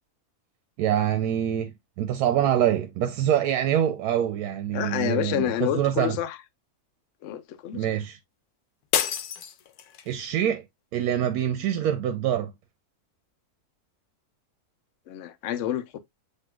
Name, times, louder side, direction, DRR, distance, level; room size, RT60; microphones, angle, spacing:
voice 1, 0.8-6.2 7.7-8.2 10.1-10.6 10.9-12.5, right 10 dB, 85° right, 1.1 m, -25 dB
voice 2, 4.7-6.4 7.2-7.9 15.1-16.0, left 11 dB, 65° left, 0.8 m, -28 dB
sound 1, 8.9-10.2, left 9 dB, 90° left, 1.2 m, -28 dB
7.7 x 2.9 x 2.3 m
omnidirectional pair, 1.6 m